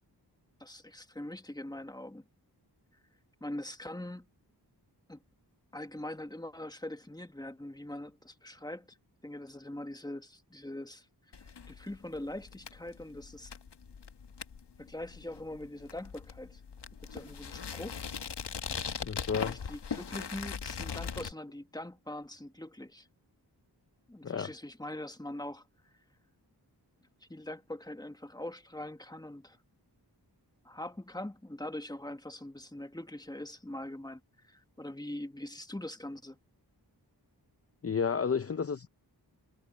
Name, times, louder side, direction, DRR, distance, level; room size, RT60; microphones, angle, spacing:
voice 1, 0.6-2.3 3.4-4.3 5.1-5.2 5.7-9.0 9.2-11.1 11.3-13.5 14.8-16.6 17.0-18.0 19.4-23.1 24.1-25.6 27.3-29.6 30.6-36.4, left 1 dB, 10° left, 1.5 m, -42 dB
sound 1, 11.3-21.3, left 6 dB, 75° left, 1.3 m, -40 dB
voice 2, 19.0-19.6 24.2-24.5 37.8-38.9, left 6 dB, 35° left, 0.6 m, -31 dB
wide cardioid pair, 65°, 41 cm